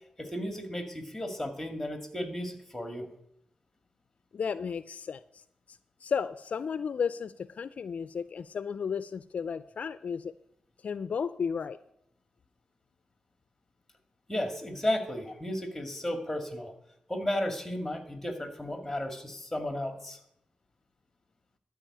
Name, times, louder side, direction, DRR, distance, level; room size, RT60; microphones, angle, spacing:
voice 1, 0.2-3.1 14.3-16.7 17.1-20.2, left 1 dB, 5° left, 6 dB, 2.2 m, -34 dB
voice 2, 4.3-5.4 5.7-10.3 10.8-11.8, left 6 dB, 65° left, 15 dB, 0.4 m, -34 dB
12.5 x 4.9 x 8.6 m, 0.77 s
cardioid pair, 80°, 3 cm